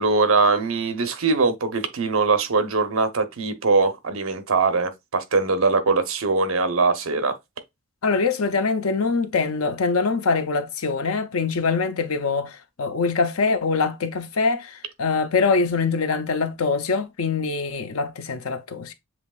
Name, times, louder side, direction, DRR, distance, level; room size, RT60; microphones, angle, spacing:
voice 1, 0.0-7.4, right 4 dB, 70° right, 0.8 m, -21 dB
voice 2, 8.0-18.9, left 4 dB, 85° left, 0.6 m, -23 dB
7.0 x 3.0 x 2.3 m
head